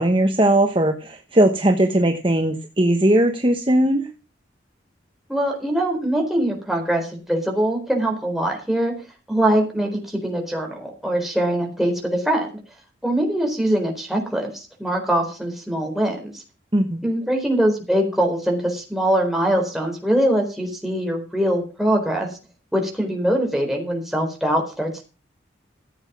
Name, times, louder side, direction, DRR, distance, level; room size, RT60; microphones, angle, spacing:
voice 1, 0.0-4.1 16.7-17.0, right 1 dB, 25° right, 5 dB, 1.1 m, -19 dB
voice 2, 5.3-8.9 9.3-12.6 13.0-16.3 17.0-22.3 22.7-25.0, right 1 dB, ahead, 1 dB, 4.2 m, -22 dB
15.5 x 8.0 x 6.1 m, 0.32 s
head